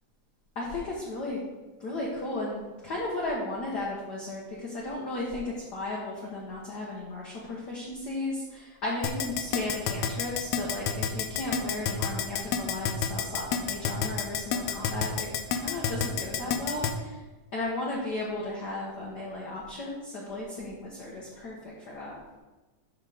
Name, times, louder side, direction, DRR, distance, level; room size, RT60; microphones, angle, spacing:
voice 1, 0.5-1.4 1.8-15.3 15.5-17.2 17.5-22.2, left 2 dB, 50° left, -4 dB, 1.2 m, -35 dB
Keyboard (musical), 9.0-16.9, left 8 dB, 80° left, 1.8 m, -28 dB
11.5 x 3.8 x 4.9 m, 1.2 s
omnidirectional pair, 3.4 m